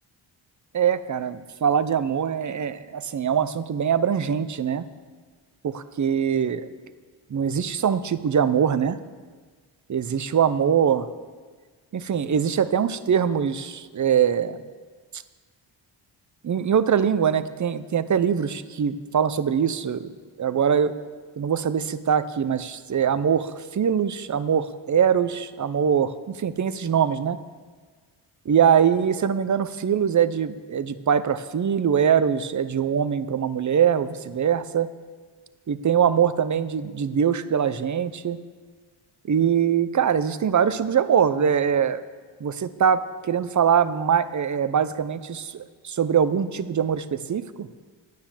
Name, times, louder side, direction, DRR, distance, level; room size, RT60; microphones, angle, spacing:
voice 1, 0.7-4.9 5.6-6.7 7.3-9.0 9.9-11.1 11.9-14.6 16.4-20.1 20.4-20.9 21.4-27.4 28.5-34.9 35.7-38.4 39.3-42.0 42.4-47.7, right 8 dB, 35° right, 13 dB, 0.6 m, -23 dB
9.5 x 9.4 x 7.2 m, 1.5 s
cardioid pair, 75°, 50 cm